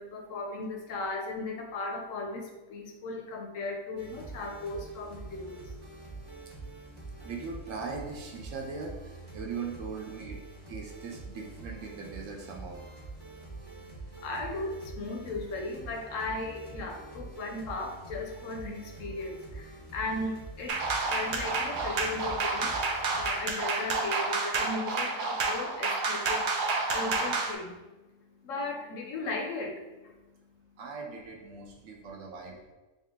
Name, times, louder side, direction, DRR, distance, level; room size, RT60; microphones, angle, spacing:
voice 1, 0.0-5.8 6.6-7.2 13.6-13.7 14.1-26.6 26.9-27.8 28.1-30.1, left 3 dB, 70° left, 2 dB, 1.0 m, -37 dB
sound 1, 4.0-23.4, right 3 dB, 20° right, 1.0 m, -45 dB
voice 2, 7.2-10.4 10.7-12.8 30.8-32.7, right 4 dB, 70° right, 0 dB, 1.1 m, -40 dB
sound 2, 20.7-27.5, right 3 dB, 85° right, 0.4 m, -30 dB
3.6 x 2.8 x 3.6 m, 1.1 s
omnidirectional pair, 1.4 m